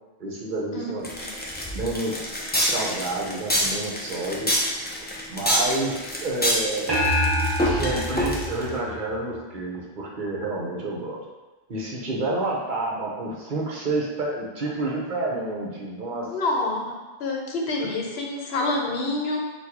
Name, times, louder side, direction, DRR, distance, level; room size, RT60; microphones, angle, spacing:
voice 1, 0.2-1.3 1.7-2.3 2.6-4.5 5.3-7.0 7.6-11.2 11.7-16.4, right 2 dB, 55° right, -2 dB, 0.9 m, -29 dB
sound 1, 1.0-8.7, equal, 15° left, 0.4 m, -26 dB
sound 2, 6.9-9.5, equal, 30° right, 0.7 m, -26 dB
voice 2, 16.3-16.8 17.2-19.4, left 2 dB, 80° left, 0 dB, 1.0 m, -27 dB
4.2 x 2.3 x 4.5 m, 1.2 s
omnidirectional pair, 1.1 m